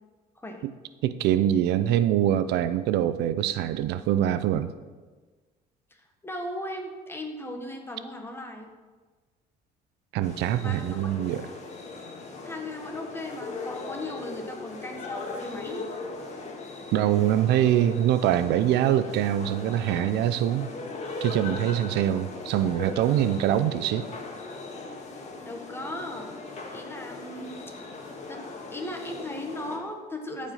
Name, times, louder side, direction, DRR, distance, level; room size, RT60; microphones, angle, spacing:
voice 1, 1.0-4.7 10.1-11.4 16.9-20.7 21.2-24.1, right 11 dB, 85° right, 13 dB, 0.5 m, -24 dB
voice 2, 5.9-8.7 10.6-11.1 12.4-15.9 25.4-26.4 26.7-27.6 28.3-30.5, left 1 dB, 15° left, 3 dB, 1.6 m, -37 dB
sound 1, 10.2-29.8, left 3 dB, 40° left, 1.9 m, -39 dB
14.0 x 5.2 x 5.6 m, 1.4 s
cardioid pair, 110°, 17 cm